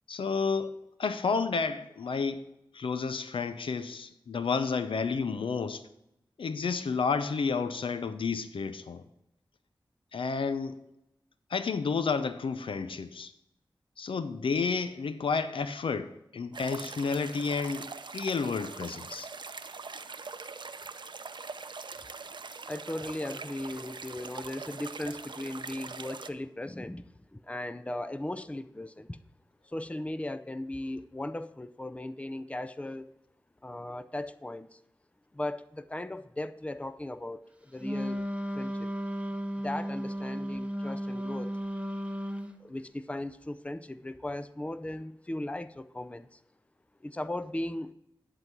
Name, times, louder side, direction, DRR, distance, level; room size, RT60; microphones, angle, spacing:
voice 1, 0.1-0.7 1.0-2.4 2.7-5.8 6.4-9.0 10.1-10.8 11.5-13.3 14.0-19.3, left 5 dB, 80° left, 11 dB, 0.6 m, -31 dB
sound 1, 16.5-26.3, right 4 dB, 60° right, 0.6 m, -42 dB
voice 2, 22.7-27.0 27.3-29.2 29.6-33.1 33.6-34.8 35.3-38.2 38.5-38.9 39.6-41.5 42.6-46.4 47.0-47.9, left 1 dB, 15° left, 12 dB, 0.5 m, -37 dB
Wind instrument woodwind instrument, 37.8-42.5, equal, 15° right, 0.9 m, -34 dB
10.5 x 4.0 x 6.0 m, 0.81 s
cardioid pair, 40°, 9 cm